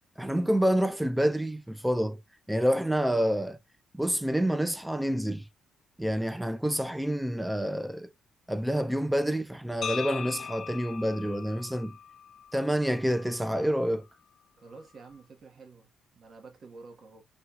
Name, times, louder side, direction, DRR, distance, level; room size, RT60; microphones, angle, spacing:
voice 1, 0.2-2.2 2.5-3.6 3.9-5.5 6.0-8.1 8.5-12.0 12.5-14.1, equal, 5° right, 0.6 m, -28 dB
sound 1, 9.8-13.9, left 7 dB, 55° left, 0.7 m, -40 dB
voice 2, 14.6-17.2, right 4 dB, 50° right, 1.3 m, -50 dB
6.1 x 2.4 x 2.9 m
cardioid pair, 90°, 0 cm